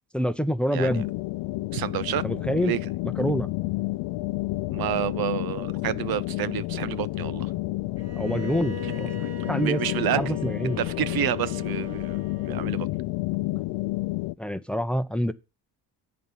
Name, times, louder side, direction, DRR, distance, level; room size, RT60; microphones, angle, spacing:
voice 1, 0.1-1.1 2.2-2.7 3.2-3.5 8.2-9.8 10.1-10.8 14.4-15.3, equal, ahead, 0.7 m, -26 dB
sound 1, 0.7-14.3, left 20 dB, 75° left, 0.5 m, -30 dB
voice 2, 0.7-1.0 1.7-2.2 2.6-2.8 4.7-7.5 8.8-8.9 9.6-10.4 10.8-12.2 12.5-12.9, right 13 dB, 55° right, 0.5 m, -29 dB
Bowed string instrument, 8.0-13.0, right 1 dB, 30° right, 1.6 m, -42 dB
9.1 x 4.2 x 7.3 m
cardioid pair, 85°, 44 cm